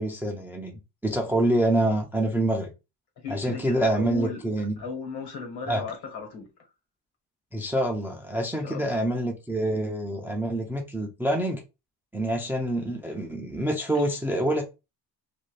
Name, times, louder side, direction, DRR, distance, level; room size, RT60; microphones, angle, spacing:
voice 1, 0.0-2.7 3.3-4.8 5.7-5.8 7.5-11.6 12.1-14.6, right 1 dB, 5° right, 0.3 m, -26 dB
voice 2, 3.2-4.4 4.8-6.5 8.6-8.9 13.9-14.0, left 5 dB, 65° left, 1.3 m, -36 dB
2.6 x 2.1 x 3.1 m
cardioid pair, 130°, 42 cm